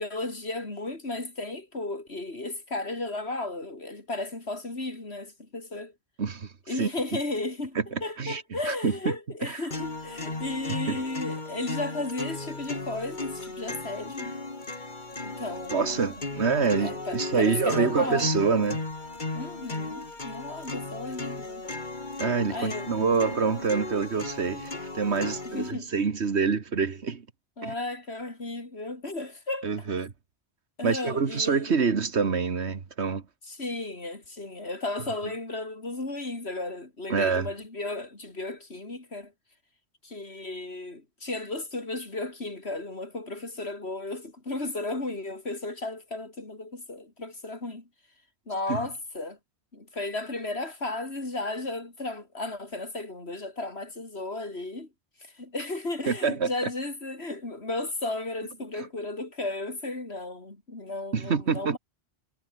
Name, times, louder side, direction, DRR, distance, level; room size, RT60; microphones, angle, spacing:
voice 1, 0.0-5.9 6.7-14.3 15.2-16.3 16.8-18.3 19.3-21.6 22.5-22.9 25.4-25.9 27.6-29.9 30.8-31.8 33.4-39.3 40.0-47.9 48.5-49.4 49.7-54.9 55.2-61.8, left 2 dB, 65° left, 4.3 m, -34 dB
voice 2, 6.2-6.5 6.8-6.9 7.9-8.9 9.4-9.6 10.9-11.0 15.7-18.8 22.2-27.3 27.6-27.7 29.6-30.1 30.8-33.2 37.1-37.5 48.7-48.9 56.1-56.5 61.1-61.8, right 5 dB, 75° right, 1.9 m, -26 dB
sound 1, 9.7-25.7, left 2 dB, 45° left, 2.7 m, -35 dB
omnidirectional pair, 1.2 m